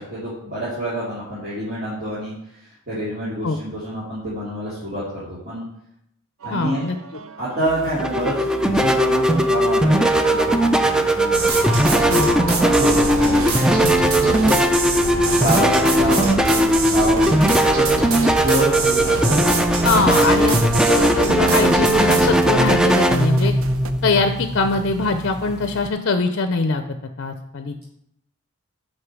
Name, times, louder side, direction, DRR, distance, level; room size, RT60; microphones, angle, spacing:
voice 1, 0.0-2.3 2.6-5.7 6.4-6.9 7.4-11.4 12.5-13.7 14.2-14.7 15.3-17.9 18.4-19.5, right 1 dB, 45° right, -10 dB, 2.6 m, -27 dB
sound 1, 6.4-23.9, right 4 dB, 70° right, 0.5 m, -34 dB
voice 2, 6.5-7.0 12.1-12.5 13.8-13.9 19.8-23.5 24.0-26.8 27.2-27.7, left 3 dB, 55° left, 8 dB, 0.6 m, -22 dB
sound 2, 7.7-25.9, right 1 dB, 5° right, 0.4 m, -18 dB
sound 3, 11.3-22.4, right 3 dB, 85° right, 1.4 m, -25 dB
6.5 x 5.6 x 6.1 m, 0.78 s
head